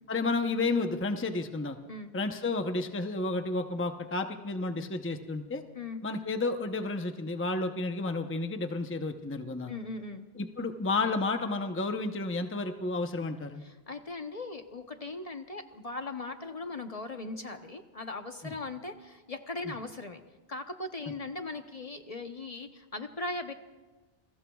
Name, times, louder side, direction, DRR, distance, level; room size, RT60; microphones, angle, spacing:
voice 1, 0.1-1.8 2.1-5.6 6.0-9.7 10.4-13.6 18.4-18.5 19.7-19.8, left 3 dB, 15° left, 6 dB, 0.7 m, -31 dB
voice 2, 9.7-10.2 13.6-20.2 20.5-23.5, left 2 dB, 40° left, 6 dB, 0.9 m, -39 dB
28.0 x 21.5 x 2.3 m, 1.2 s
omnidirectional pair, 1.0 m